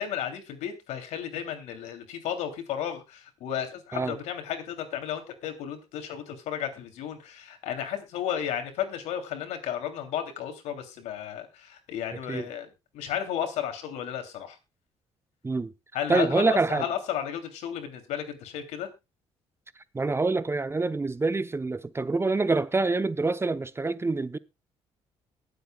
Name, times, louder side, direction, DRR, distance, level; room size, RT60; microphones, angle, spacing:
voice 1, 0.0-14.6 15.9-18.9, left 9 dB, 80° left, 3.0 m, -33 dB
voice 2, 16.1-16.8 19.9-24.4, right 3 dB, 20° right, 0.8 m, -26 dB
22.0 x 8.0 x 2.3 m
supercardioid pair, 70°, 12 cm